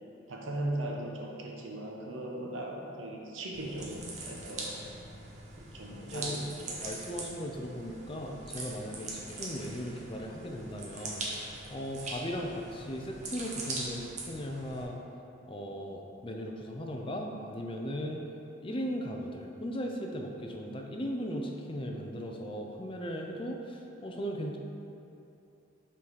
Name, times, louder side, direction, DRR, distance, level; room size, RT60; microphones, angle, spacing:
voice 1, 0.3-4.8 5.6-6.8, right 1 dB, 80° right, -1 dB, 0.9 m, -38 dB
sound 1, 3.5-14.8, right 2 dB, 35° right, 0.9 m, -42 dB
voice 2, 5.9-6.4 6.8-11.3 11.7-15.0 15.5-18.3 18.6-24.6, equal, 25° left, 1 dB, 0.5 m, -37 dB
5.9 x 4.9 x 4.6 m, 2.8 s
head